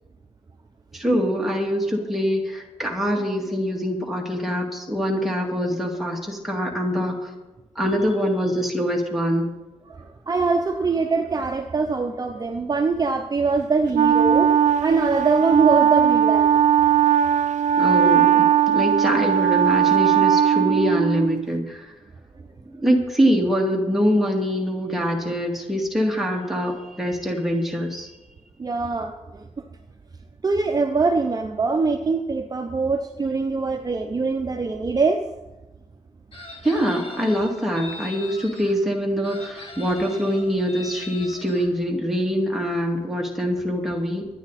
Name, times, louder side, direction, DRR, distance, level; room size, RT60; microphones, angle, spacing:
voice 1, 0.9-7.3 7.8-9.5 17.8-21.9 22.8-28.1 36.6-44.3, equal, ahead, -1 dB, 2.4 m, -24 dB
voice 2, 9.9-14.5 14.8-16.5 28.6-29.7 30.4-35.2, right 4 dB, 30° right, 4 dB, 0.7 m, -23 dB
Wind instrument woodwind instrument, 13.9-21.5, right 9 dB, 80° right, 0.4 m, -18 dB
Chicken rooster, 36.3-38.7 39.2-41.7, left 2 dB, 50° left, 2.8 m, -40 dB
24.0 x 9.8 x 4.2 m, 1.1 s
wide cardioid pair, 170°, 12 cm